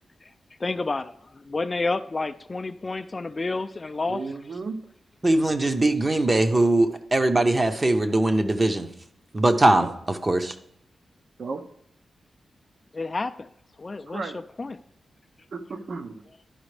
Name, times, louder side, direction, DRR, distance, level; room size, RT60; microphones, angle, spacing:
voice 1, 0.6-4.2 12.9-13.5 13.8-14.8, left 3 dB, 30° left, 11 dB, 0.3 m, -30 dB
voice 2, 4.1-4.8 9.7-9.9 11.4-11.7 14.1-14.4 15.5-16.2, right 4 dB, 60° right, 8 dB, 0.7 m, -34 dB
voice 3, 5.2-8.9 9.3-10.5, right 2 dB, 25° right, 7 dB, 0.7 m, -21 dB
11.5 x 5.0 x 3.2 m, 0.74 s
wide cardioid pair, 120°, 0 cm